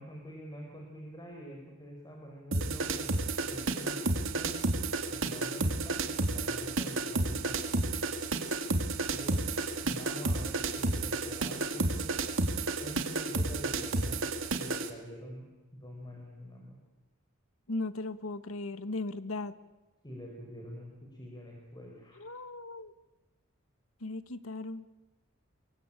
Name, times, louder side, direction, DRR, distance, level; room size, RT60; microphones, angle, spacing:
voice 1, 0.0-7.8 9.1-12.1 12.8-14.2 14.5-15.4 15.7-16.8 20.0-22.2, equal, 20° left, 1 dB, 4.4 m, -46 dB
sound 1, 2.5-14.9, right 2 dB, 65° right, 2.4 m, -31 dB
sound 2, 8.2-8.6 9.3-9.7 10.1-10.5 11.1-11.6 12.0-12.4 12.7-13.2 13.7-14.1, right 5 dB, 20° right, 6.3 m, -54 dB
voice 2, 17.7-19.5 22.2-22.9 24.0-24.8, left 2 dB, 80° left, 13 dB, 1.4 m, -37 dB
26.0 x 23.0 x 8.8 m, 1.1 s
head